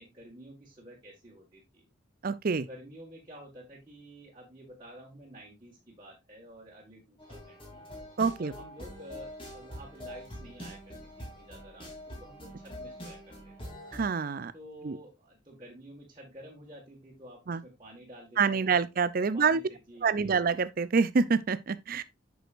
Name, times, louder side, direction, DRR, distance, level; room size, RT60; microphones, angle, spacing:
voice 1, 0.0-1.9 2.5-7.9 8.4-13.5 14.5-18.8 19.2-20.4, equal, 25° right, 1.8 m, -50 dB
voice 2, 2.2-2.7 8.2-8.5 13.9-14.5 14.8-15.0 17.5-17.6 18.4-19.6 20.0-22.0, right 5 dB, 50° right, 0.5 m, -26 dB
sound 1, 7.2-14.1, equal, 30° left, 3.1 m, -44 dB
8.1 x 6.3 x 2.5 m
head